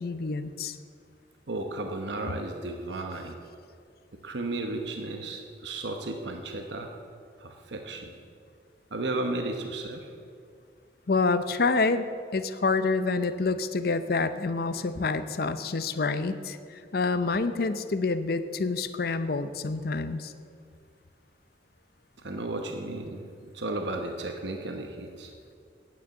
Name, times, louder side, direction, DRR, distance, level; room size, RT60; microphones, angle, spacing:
voice 1, 0.0-0.8 11.1-12.1 12.3-20.3, left 3 dB, 55° left, 12 dB, 0.6 m, -27 dB
voice 2, 1.5-3.4 4.2-6.9 7.4-8.1 8.9-10.1 22.2-25.3, right 2 dB, 80° right, 4 dB, 0.9 m, -34 dB
9.4 x 9.2 x 7.2 m, 2.2 s
head